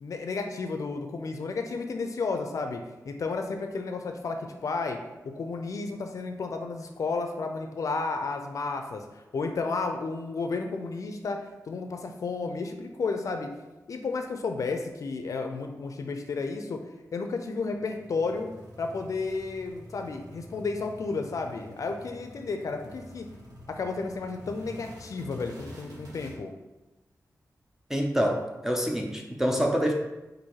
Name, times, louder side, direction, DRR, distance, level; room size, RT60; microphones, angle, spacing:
voice 1, 0.0-4.4 4.6-5.0 5.2-11.4 11.7-13.5 13.9-16.8 17.1-18.5 18.8-23.3 23.7-26.5, left 4 dB, 60° left, 5 dB, 0.4 m, -32 dB
sound 1, 17.6-26.4, equal, 75° right, 1.1 m, -48 dB
voice 2, 27.9-29.9, equal, 5° right, 1 dB, 0.5 m, -26 dB
4.1 x 2.6 x 4.6 m, 1.0 s
wide cardioid pair, 150°, 6 cm